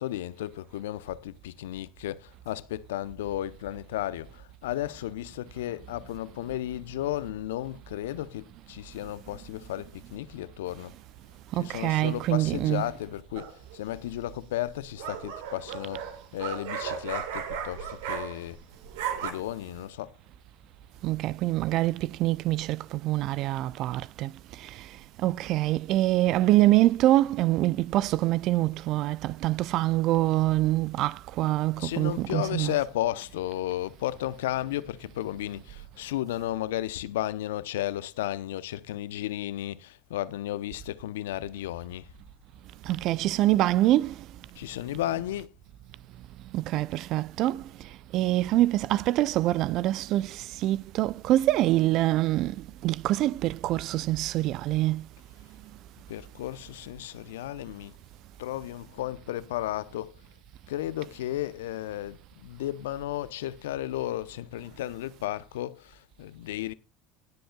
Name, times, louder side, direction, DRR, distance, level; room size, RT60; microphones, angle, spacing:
voice 1, 0.0-10.9 11.6-18.6 19.2-20.1 31.8-42.1 44.6-45.5 56.1-58.0 58.4-60.1 60.7-66.7, left 14 dB, 75° left, 0.7 m, -34 dB
voice 2, 11.5-13.0 21.0-32.8 42.8-44.3 46.5-55.1, right 15 dB, 55° right, 0.4 m, -25 dB
sound 1, 13.4-13.8 14.7-18.6 18.8-19.3, right 8 dB, 75° right, 2.4 m, -35 dB
18.5 x 7.8 x 2.3 m
hypercardioid pair, 75°, 0 cm